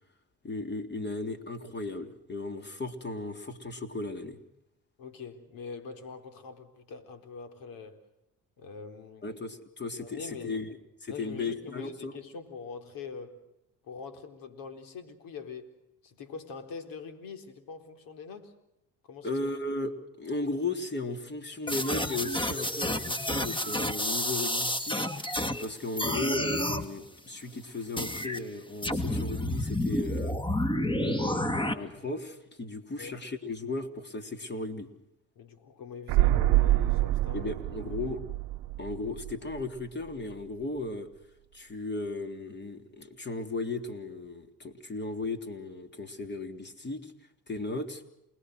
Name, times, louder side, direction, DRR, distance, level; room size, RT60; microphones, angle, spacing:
voice 1, 0.4-4.4 9.2-12.2 19.2-25.1 25.6-30.4 30.9-34.9 37.3-38.2 38.8-41.1 41.5-47.1 47.5-48.0, left 2 dB, 30° left, 7 dB, 3.6 m, -36 dB
voice 2, 5.0-8.0 8.6-9.3 9.9-10.6 11.1-13.4 13.8-15.7 16.0-18.5 19.0-19.4 33.0-33.1 35.4-37.5 37.8-38.1, left 5 dB, 70° left, 7 dB, 4.1 m, -43 dB
sound 1, 21.7-25.7 26.0-26.9 28.0-28.4 28.8-31.7, left 1 dB, 15° left, 2.2 m, -30 dB
sound 2, 36.1-39.8 40.1-40.2, right 16 dB, 75° right, 0.8 m, -26 dB
29.0 x 20.5 x 6.5 m, 0.85 s
supercardioid pair, 80°, 35 cm